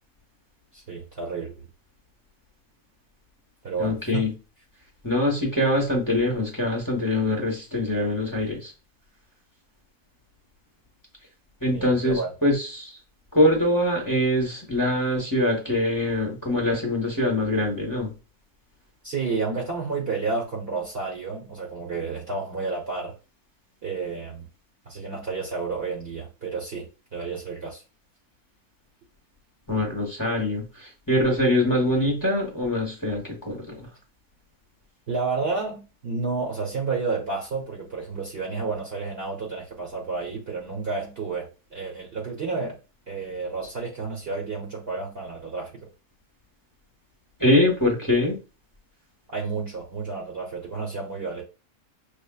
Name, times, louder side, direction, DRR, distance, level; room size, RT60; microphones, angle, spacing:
voice 1, 0.7-1.7 3.6-4.2 11.7-12.3 19.0-23.1 23.8-24.5 24.9-27.8 35.1-42.8 43.1-45.9 49.3-51.4, right 4 dB, 45° right, -3 dB, 1.1 m, -31 dB
voice 2, 3.8-4.3 5.0-8.7 11.6-12.9 13.3-18.1 29.7-33.9 47.4-48.4, left 1 dB, 15° left, 0 dB, 1.1 m, -23 dB
6.6 x 2.5 x 2.3 m, 0.31 s
omnidirectional pair, 1.6 m